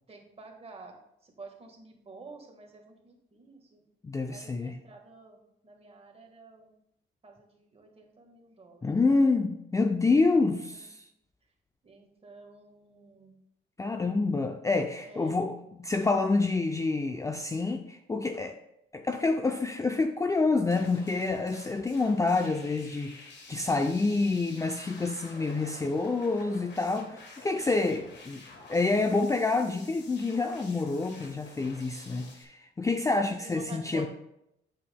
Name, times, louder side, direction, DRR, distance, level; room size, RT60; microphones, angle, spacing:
voice 1, 0.1-1.0 1.2-3.8 4.3-6.7 7.2-9.3 10.3-10.8 11.8-13.3 15.0-15.4 33.4-34.1, right 3 dB, 30° right, 2 dB, 1.6 m, -50 dB
voice 2, 4.0-4.8 8.8-11.0 13.8-18.6 18.9-28.4 28.7-34.1, left 3 dB, 15° left, 6 dB, 0.4 m, -27 dB
sound 1, 20.7-32.4, left 3 dB, 60° left, 1.5 m, -50 dB
8.4 x 7.3 x 2.2 m, 0.81 s
cardioid pair, 90°, 20 cm